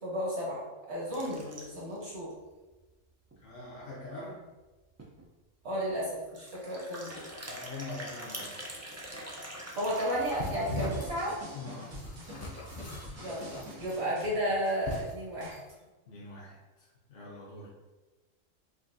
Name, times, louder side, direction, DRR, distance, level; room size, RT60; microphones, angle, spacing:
voice 1, 0.0-2.3 5.6-7.3 9.7-11.4 13.2-15.6, equal, 55° right, -6 dB, 1.7 m, -33 dB
sound 1, 1.1-2.0 2.5-2.6 2.8-2.9 3.3-3.4 4.6-4.7 5.0-5.2 6.3-10.9, right 1 dB, 25° right, 0.3 m, -44 dB
voice 2, 3.4-4.5 7.4-8.7 9.6-9.7 11.5-11.9 16.1-16.6 17.1-17.7, left 2 dB, 70° left, -6 dB, 1.1 m, -43 dB
sound 2, 9.9-15.7, left 2 dB, 45° left, 0.7 m, -40 dB
sound 3, 10.4-15.6, left 1 dB, 75° right, 1.4 m, -46 dB
4.9 x 2.7 x 2.6 m, 1.2 s
omnidirectional pair, 1.3 m